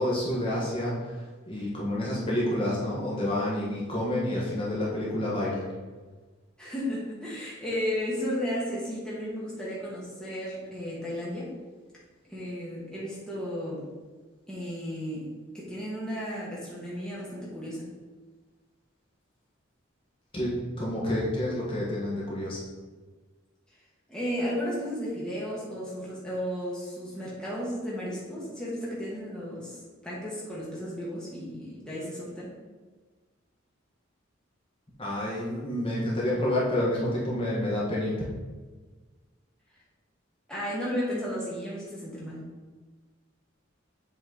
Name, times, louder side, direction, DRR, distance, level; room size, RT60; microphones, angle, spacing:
voice 1, 0.0-5.6 20.3-22.6 35.0-38.3, left 1 dB, 25° left, -6 dB, 1.3 m, -29 dB
voice 2, 6.6-11.5 12.3-13.9 14.5-15.3 15.5-17.9 24.1-32.5 40.5-42.5, equal, 5° left, -7 dB, 1.5 m, -34 dB
7.6 x 4.2 x 3.9 m, 1.4 s
head